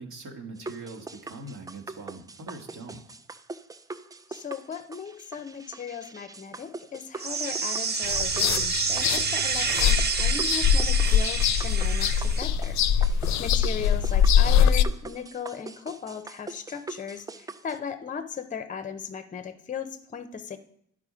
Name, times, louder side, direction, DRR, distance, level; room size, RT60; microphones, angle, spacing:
voice 1, 0.0-3.0 13.9-14.1, right 3 dB, 75° right, 2 dB, 1.7 m, -42 dB
sound 1, 0.6-17.8, right 3 dB, 15° right, 0.3 m, -43 dB
voice 2, 4.3-13.1 13.4-20.6, left 7 dB, 25° left, 10 dB, 0.6 m, -37 dB
sound 2, 7.2-12.4, right 5 dB, 35° right, 0.7 m, -28 dB
sound 3, 8.0-14.8, left 8 dB, 65° left, 0.5 m, -23 dB
11.0 x 4.9 x 5.0 m, 0.68 s
cardioid pair, 135°, 30 cm